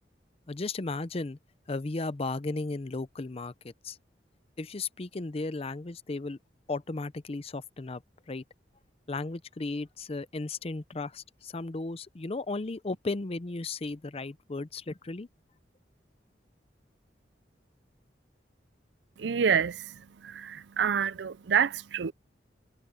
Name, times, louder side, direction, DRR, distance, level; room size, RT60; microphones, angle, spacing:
voice 1, 0.5-1.4 1.7-4.0 4.6-6.4 6.7-8.0 8.3-8.4 9.1-15.3, left 3 dB, 35° left, 0.6 m, -35 dB
voice 2, 19.2-22.1, right 7 dB, 85° right, 0.5 m, -28 dB
head